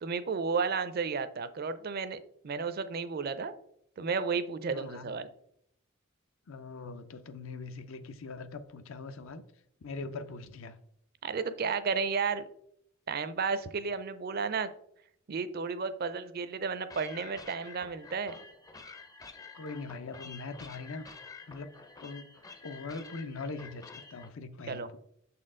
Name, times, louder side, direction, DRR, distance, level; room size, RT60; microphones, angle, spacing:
voice 1, 0.0-2.2 2.4-3.5 4.0-5.3 11.2-12.4 13.1-14.7 15.3-18.4 24.7-24.9, right 5 dB, 45° right, 12 dB, 0.5 m, -32 dB
voice 2, 4.7-5.1 6.5-9.4 9.8-10.8 19.5-21.0 21.5-25.0, left 3 dB, 75° left, 10 dB, 0.6 m, -42 dB
sound 1, 16.9-24.3, left 4 dB, 15° left, 0.5 m, -49 dB
6.7 x 4.3 x 3.7 m, 0.71 s
head